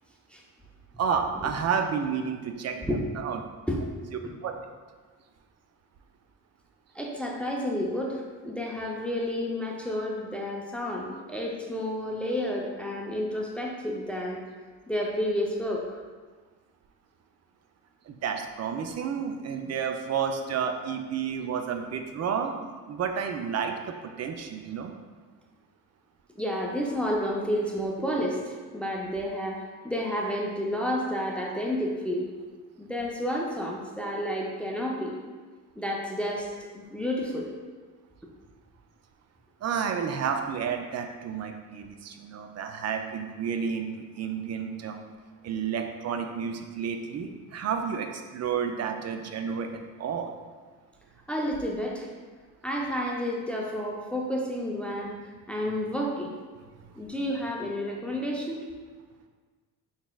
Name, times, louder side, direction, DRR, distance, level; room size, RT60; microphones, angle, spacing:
voice 1, 1.0-3.4 4.4-4.5 18.1-24.9 39.6-45.0 45.4-50.3, right 7 dB, 45° right, 5 dB, 0.5 m, -31 dB
voice 2, 6.9-14.4 14.9-15.8 26.4-32.3 32.8-35.1 35.8-37.5 51.3-52.1 52.6-55.2 55.5-56.3 57.0-58.6, equal, 5° left, -2 dB, 0.5 m, -30 dB
4.0 x 3.6 x 2.3 m, 1.5 s
supercardioid pair, 65°, 38 cm